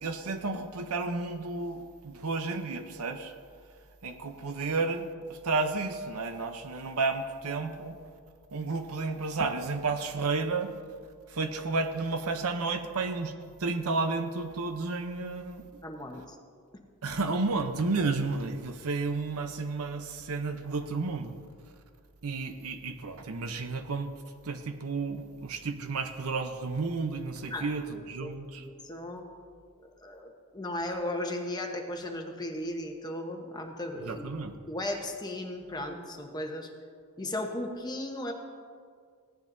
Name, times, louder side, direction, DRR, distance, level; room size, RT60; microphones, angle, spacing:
voice 1, 0.0-3.3 4.0-8.0 8.5-10.7 11.3-13.3 13.6-15.6 17.0-21.3 22.2-24.1 24.4-28.6 34.0-34.5, right 3 dB, 70° right, 7 dB, 0.7 m, -32 dB
voice 2, 15.8-16.4 27.5-27.7 28.2-29.2 30.0-34.3 34.7-36.7 37.2-38.3, left 1 dB, 20° left, 3 dB, 1.0 m, -36 dB
16.5 x 10.5 x 2.7 m, 2.1 s
head